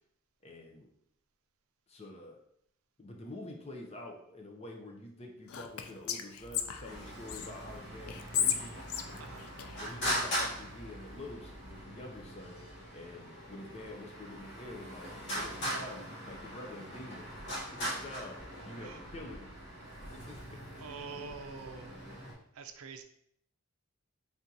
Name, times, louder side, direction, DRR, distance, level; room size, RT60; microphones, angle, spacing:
voice 1, 0.4-0.9 1.9-2.4 3.0-8.8 9.8-12.6 12.9-17.3 17.7-19.5 20.1-20.9, left 1 dB, 30° left, 2 dB, 0.6 m, -47 dB
Whispering, 5.5-7.5 8.1-10.2, left 9 dB, 80° left, 0.4 m, -35 dB
sound 1, 6.4-11.8, equal, 25° right, 0.6 m, -53 dB
Traffic noise roadway noise, 6.8-22.3, equal, 55° left, 1.6 m, -41 dB
voice 2, 20.8-21.9 22.3-23.0, right 5 dB, 80° right, 7 dB, 0.5 m, -46 dB
3.5 x 2.9 x 3.8 m, 0.69 s
head